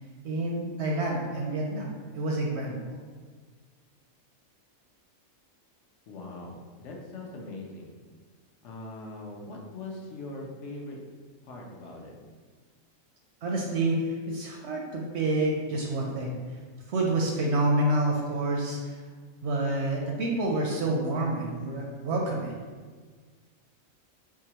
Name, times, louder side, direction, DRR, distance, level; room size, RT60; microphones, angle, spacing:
voice 1, 0.2-3.0 13.4-16.4 16.9-19.0 19.4-22.5, right 2 dB, 65° right, -1 dB, 0.7 m, -28 dB
voice 2, 6.1-7.9 8.6-11.0 11.4-12.1, left 2 dB, 65° left, 0 dB, 0.9 m, -41 dB
4.8 x 2.4 x 2.8 m, 1.5 s
omnidirectional pair, 1.5 m